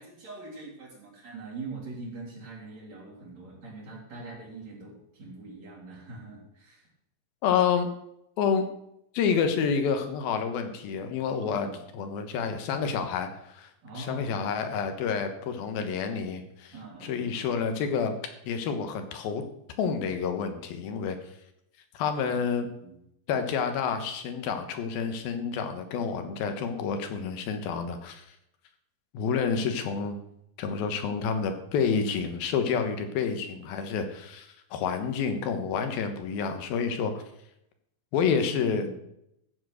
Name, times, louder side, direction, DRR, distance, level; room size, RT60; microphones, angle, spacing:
voice 1, 0.0-6.9 11.5-11.8 13.8-14.4 15.7-16.0 16.7-17.4 22.3-23.0 38.6-38.9, right 3 dB, 50° right, -4 dB, 4.6 m, -42 dB
voice 2, 7.4-7.9 8.4-8.7 9.1-11.7 11.9-13.7 13.9-16.7 17.0-18.1 18.5-19.4 19.8-21.2 21.9-22.7 23.3-28.2 29.1-30.2 30.6-37.2 38.1-38.9, left 6 dB, 85° left, 7 dB, 3.1 m, -29 dB
14.0 x 7.5 x 6.3 m, 0.79 s
omnidirectional pair, 4.2 m